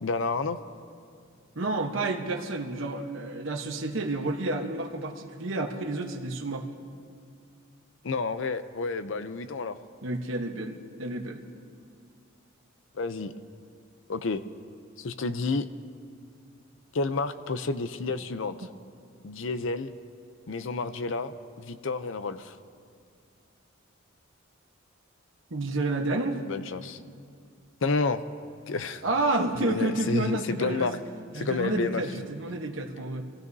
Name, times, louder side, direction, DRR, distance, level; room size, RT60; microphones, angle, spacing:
voice 1, 0.0-0.6 8.0-9.8 12.9-13.3 14.1-14.4 15.0-15.6 16.9-18.7 19.2-19.9 20.5-22.6 26.5-27.0 27.8-28.2 28.7-29.0 29.6-31.0 31.3-32.2, left 3 dB, 65° left, 11 dB, 0.6 m, -30 dB
voice 2, 1.6-6.7 10.0-11.4 25.5-26.4 29.0-30.9 31.3-33.2, right 2 dB, 70° right, 3 dB, 1.0 m, -30 dB
26.5 x 16.0 x 2.7 m, 2.2 s
head